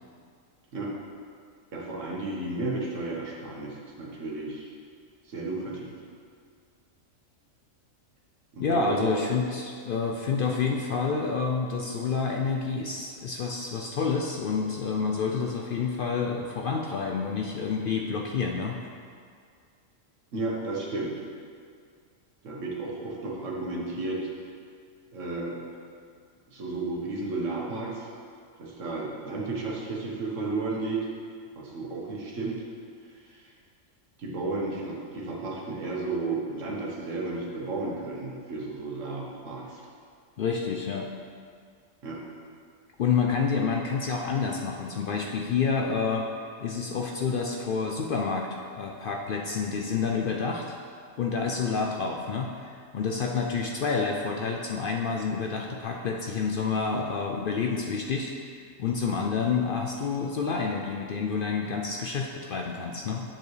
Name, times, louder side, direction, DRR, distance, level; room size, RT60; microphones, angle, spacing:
voice 1, 1.7-4.7 5.2-5.9 8.5-9.2 20.3-21.2 22.4-24.3 25.1-25.6 26.5-28.1 28.6-31.1 31.6-32.6 33.3-33.5 34.2-39.8 42.0-42.2, right 3 dB, 70° right, -3 dB, 1.5 m, -33 dB
voice 2, 8.6-18.8 40.4-41.1 43.0-46.3 46.6-48.5 48.7-50.8 51.2-63.2, left 5 dB, 65° left, 1 dB, 0.5 m, -28 dB
7.6 x 7.0 x 3.2 m, 2.2 s
omnidirectional pair, 1.4 m